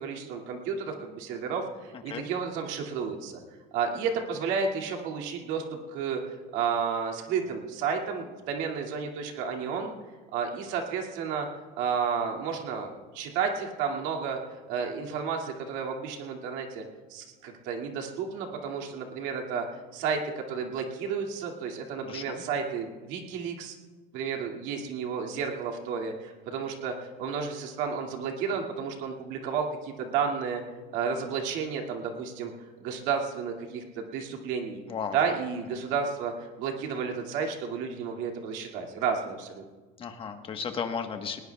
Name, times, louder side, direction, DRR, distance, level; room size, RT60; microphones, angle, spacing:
voice 1, 0.0-3.4 3.7-9.9 10.3-11.5 11.8-14.4 14.7-16.8 17.1-19.7 19.9-23.8 24.1-30.6 30.9-32.5 32.8-34.8 35.1-39.6, right 6 dB, 75° right, 1 dB, 2.4 m, -32 dB
voice 2, 1.9-2.3 22.0-22.4 34.9-35.2 35.8-35.9 40.0-41.4, left 6 dB, 30° left, 5 dB, 1.3 m, -35 dB
20.0 x 19.5 x 2.3 m, 1.3 s
cardioid pair, 150°, 19 cm